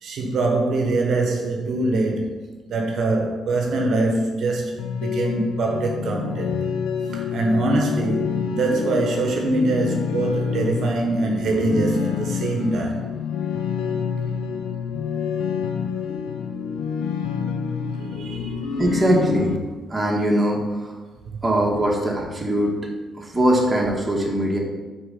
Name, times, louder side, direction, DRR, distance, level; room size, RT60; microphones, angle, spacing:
voice 1, 0.0-6.6 7.1-13.1 18.0-18.8, right 2 dB, 65° right, 2 dB, 0.9 m, -23 dB
sound 1, 4.8-19.6, left 6 dB, 90° left, 0.5 m, -27 dB
voice 2, 18.8-19.6 19.9-20.9 21.4-24.6, equal, 15° right, -2 dB, 1.4 m, -21 dB
4.7 x 4.4 x 5.2 m, 1.3 s
cardioid pair, 90°, 0 cm